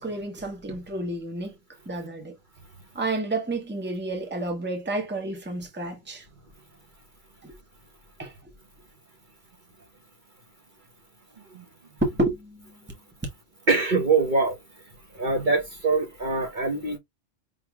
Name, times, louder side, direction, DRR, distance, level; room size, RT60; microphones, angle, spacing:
voice 1, 0.0-1.5 1.9-2.4 2.9-6.3 7.4-7.5 8.2-8.3 12.0-12.8, right 2 dB, 10° right, 1.0 m, -30 dB
voice 2, 13.7-14.6 15.1-17.0, right 3 dB, 45° right, 1.1 m, -23 dB
5.6 x 3.2 x 2.3 m
omnidirectional pair, 1.2 m